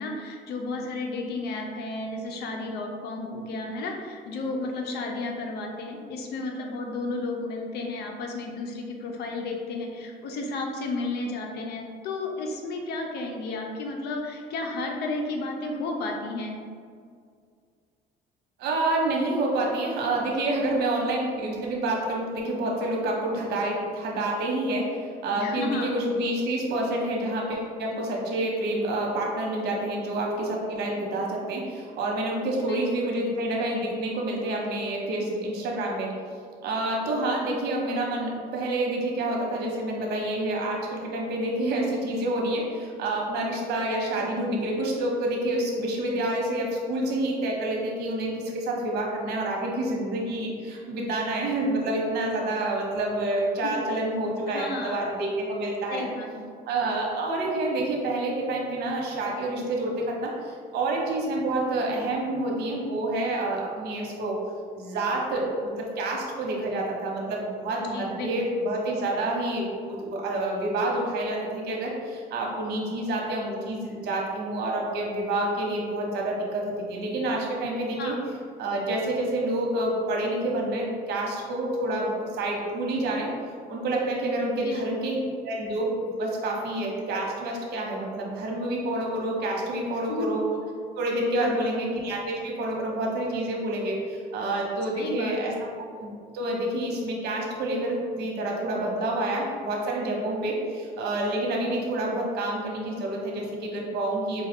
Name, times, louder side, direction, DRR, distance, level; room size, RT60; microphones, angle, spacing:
voice 1, 0.0-16.6 25.3-25.9 32.7-33.1 54.5-55.0 55.9-56.3 67.9-68.4 78.0-78.2 84.4-85.2 90.1-90.3 91.4-91.8 95.0-95.6, left 2 dB, 75° left, 1 dB, 0.7 m, -33 dB
voice 2, 18.6-36.1 36.6-56.0 56.7-64.4 64.7-78.1 78.6-83.3 83.7-85.2 85.4-90.4 90.9-104.5, right 1 dB, 75° right, -1 dB, 1.0 m, -28 dB
5.1 x 2.4 x 3.6 m, 2.1 s
cardioid pair, 110°, 17 cm